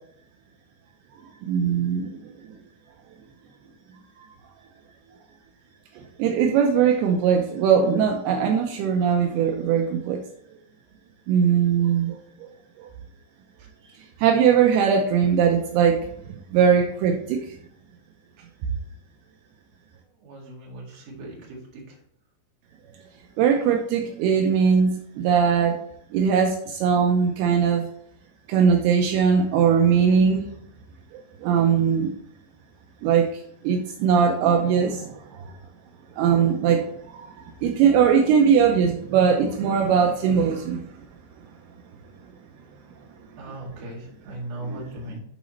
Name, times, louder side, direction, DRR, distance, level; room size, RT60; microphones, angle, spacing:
voice 1, 1.4-2.1 6.2-10.2 11.3-12.2 12.8-12.9 14.2-17.6 23.4-25.8 26.1-27.9 28.5-30.4 31.1-32.1 33.0-33.3 33.6-35.5 36.2-40.8 44.7-44.8, right 7 dB, 85° right, 3 dB, 2.4 m, -20 dB
voice 2, 20.1-22.0 43.4-45.2, right 1 dB, 45° right, -3 dB, 2.5 m, -38 dB
11.5 x 4.1 x 3.1 m, 0.70 s
omnidirectional pair, 5.2 m